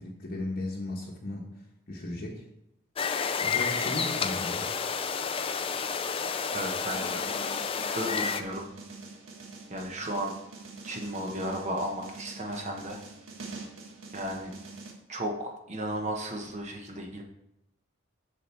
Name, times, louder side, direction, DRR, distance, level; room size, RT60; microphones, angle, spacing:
voice 1, 0.0-1.4 1.9-2.4 3.4-4.7, left 1 dB, 45° left, -2 dB, 1.1 m, -36 dB
sound 1, 3.0-8.4, left 6 dB, 25° left, 0.4 m, -30 dB
voice 2, 6.5-7.2 7.8-8.7 9.7-10.3 10.8-13.0 14.1-14.5 15.1-17.2, right 1 dB, 35° right, 2 dB, 1.0 m, -34 dB
sound 2, 6.9-14.9, right 3 dB, 70° right, 1.6 m, -45 dB
7.4 x 6.9 x 4.4 m, 0.82 s
head